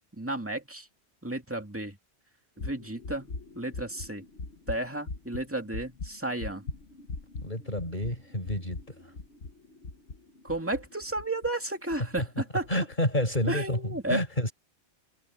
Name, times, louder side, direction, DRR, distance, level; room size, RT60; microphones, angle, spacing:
voice 1, 0.1-0.9 1.2-2.0 2.6-4.2 4.7-6.6 10.4-12.7 13.5-14.2, right 2 dB, 10° right, 2.4 m, -33 dB
sound 1, 2.6-11.5 11.9-12.2 12.6-12.9, left 3 dB, 80° left, 1.8 m, -41 dB
voice 2, 7.4-8.8 12.2-12.3 12.7-13.8 14.1-14.5, left 1 dB, 45° left, 5.5 m, -29 dB
omnidirectional pair, 1.1 m